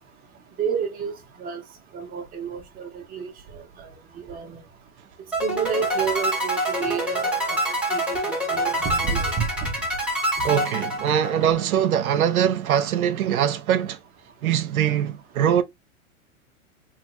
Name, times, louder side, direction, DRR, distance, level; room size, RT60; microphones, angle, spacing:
voice 1, 0.6-1.1 1.4-1.6 1.9-3.9 4.2-4.6 5.4-9.7, right 6 dB, 20° right, 0.8 m, -30 dB
sound 1, 5.3-11.6, right 1 dB, 5° right, 1.1 m, -26 dB
voice 2, 10.4-14.0 14.4-15.6, right 9 dB, 80° right, 0.6 m, -22 dB
3.1 x 2.3 x 3.0 m
hypercardioid pair, 125°, 42 cm